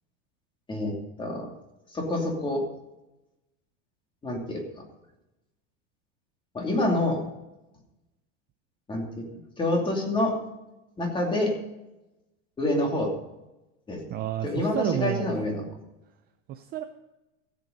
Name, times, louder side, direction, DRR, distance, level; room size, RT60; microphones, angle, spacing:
voice 1, 0.7-1.5 1.9-2.6 4.2-4.6 6.5-7.2 8.9-9.2 9.6-10.4 11.0-11.5 12.6-13.1 13.9-14.0 14.4-15.6, left 1 dB, 15° left, 1 dB, 2.7 m, -27 dB
voice 2, 14.1-15.4 16.5-16.8, right 11 dB, 25° right, 7 dB, 0.5 m, -30 dB
15.0 x 8.3 x 5.2 m, 0.97 s
supercardioid pair, 160°, 36 cm